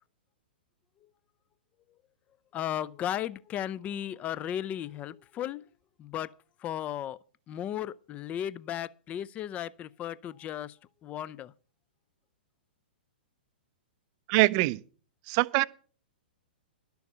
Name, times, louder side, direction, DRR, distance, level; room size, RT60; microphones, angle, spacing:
voice 1, 2.5-5.6 6.0-6.3 6.6-7.2 7.5-10.7 11.0-11.5, left 11 dB, 25° left, 0.4 m, -35 dB
voice 2, 14.3-14.8 15.3-15.6, right 22 dB, 40° right, 0.5 m, -23 dB
12.0 x 6.9 x 6.8 m
figure-of-eight pair, 115°, 6 cm